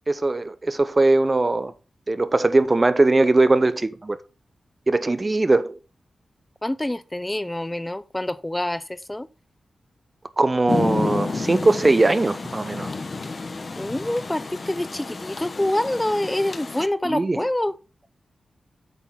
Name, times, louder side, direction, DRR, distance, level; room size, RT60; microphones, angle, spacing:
voice 1, 0.1-1.7 2.1-4.2 4.9-5.7 10.4-12.9 17.0-17.4, right 2 dB, 35° right, 0.7 m, -20 dB
voice 2, 6.6-9.3 13.8-17.7, left 1 dB, 15° left, 0.6 m, -26 dB
Rain, 10.7-16.9, left 3 dB, 50° left, 1.1 m, -30 dB
8.3 x 3.9 x 5.6 m
cardioid pair, 50°, 0 cm